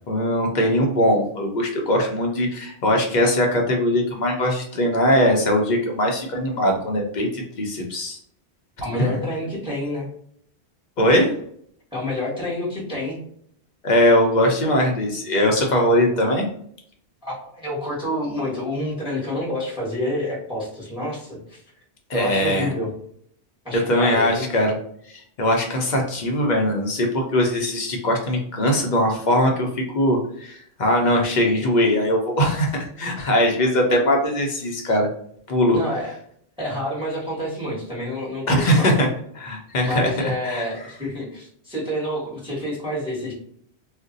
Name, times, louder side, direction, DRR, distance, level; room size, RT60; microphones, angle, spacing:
voice 1, 0.1-8.2 9.0-9.2 11.0-11.3 13.8-16.5 22.1-22.7 23.9-24.8 25.4-35.1 35.5-35.8 38.5-39.1 39.4-40.6, left 1 dB, 50° left, 1 dB, 0.6 m, -20 dB
voice 2, 8.8-10.1 11.9-13.2 17.2-21.6 22.1-22.9 23.6-24.5 35.7-36.2 36.6-38.9 39.8-43.3, left 1 dB, 5° right, -6 dB, 1.1 m, -28 dB
2.5 x 2.1 x 3.8 m, 0.65 s
omnidirectional pair, 1.1 m